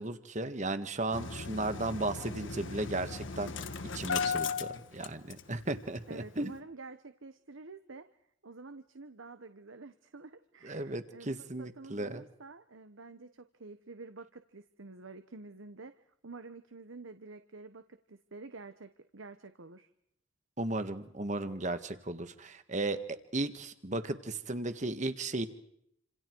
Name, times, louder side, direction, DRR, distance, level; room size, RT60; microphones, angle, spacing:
voice 1, 0.0-3.5 3.9-6.6 10.6-12.2 20.6-25.5, right 2 dB, 35° right, 10 dB, 1.6 m, -35 dB
Engine starting, 1.1-5.7 6.0-6.1 6.4-6.5, left 5 dB, 75° left, 1.5 m, -36 dB
voice 2, 6.1-8.1 8.4-19.9, right 3 dB, 85° right, 9 dB, 1.2 m, -49 dB
28.5 x 27.0 x 4.7 m, 0.74 s
head